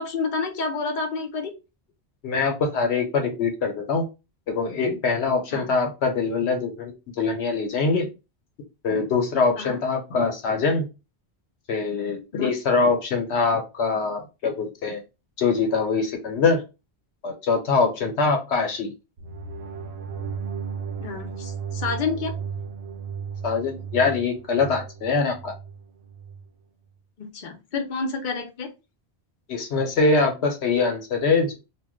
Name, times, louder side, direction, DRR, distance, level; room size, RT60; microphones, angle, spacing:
voice 1, 0.0-1.5 5.5-5.7 9.6-9.8 12.3-12.5 21.0-22.3 27.2-28.7, left 4 dB, 50° left, 2 dB, 0.8 m, -29 dB
voice 2, 2.2-4.0 4.5-8.1 8.8-10.9 11.7-15.0 15.4-16.6 17.2-18.9 23.4-25.5 29.5-31.5, left 4 dB, 85° left, 4 dB, 1.1 m, -23 dB
sound 1, 19.2-26.4, right 6 dB, 80° right, 0.8 m, -35 dB
2.5 x 2.2 x 3.6 m, 0.27 s
omnidirectional pair, 1.1 m